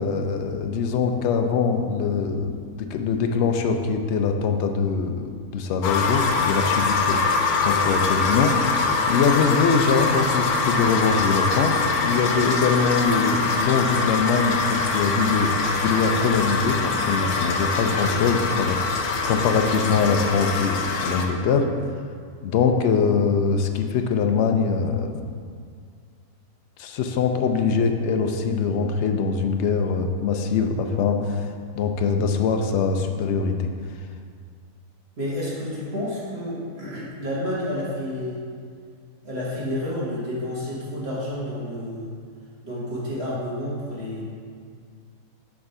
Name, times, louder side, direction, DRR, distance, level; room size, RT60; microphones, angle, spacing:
voice 1, 0.0-7.2 7.6-8.6 9.1-20.8 21.0-21.7 22.4-25.1 26.8-31.4 31.7-33.5, left 5 dB, 65° left, 5 dB, 0.7 m, -23 dB
Toilet Tank Fill, 5.8-21.3, left 4 dB, 90° left, 1.2 m, -24 dB
voice 2, 35.2-38.4 39.2-42.1 42.6-44.2, left 1 dB, 45° right, -7 dB, 1.6 m, -30 dB
7.2 x 3.7 x 5.4 m, 2.1 s
omnidirectional pair, 1.5 m